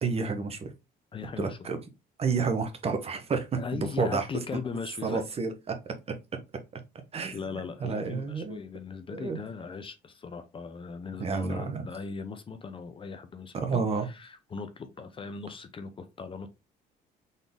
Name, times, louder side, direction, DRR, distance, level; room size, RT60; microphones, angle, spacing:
voice 1, 0.0-0.7 1.4-1.8 2.2-4.3 5.0-5.5 7.1-7.4 7.8-8.6 9.1-9.4 11.2-11.8 13.5-14.1, right 4 dB, 35° right, 1.1 m, -30 dB
voice 2, 1.1-1.7 3.6-5.2 7.3-16.5, left 5 dB, 30° left, 0.7 m, -39 dB
4.1 x 3.7 x 3.5 m
cardioid pair, 110°, 17 cm